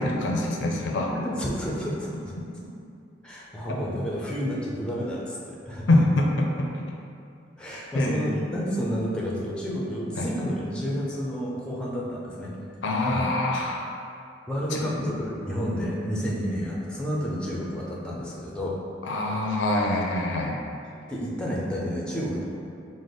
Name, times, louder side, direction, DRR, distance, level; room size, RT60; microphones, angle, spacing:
voice 1, 0.0-1.1 5.9-6.9 7.9-8.4 10.2-10.3 12.8-13.9 14.7-15.2 19.0-20.6, left 2 dB, 70° left, 0 dB, 0.5 m, -25 dB
voice 2, 1.1-2.4 3.2-5.9 7.6-12.5 13.1-13.3 14.5-18.8 21.1-22.4, equal, 5° left, -4 dB, 0.5 m, -30 dB
4.9 x 2.0 x 3.9 m, 2.5 s
head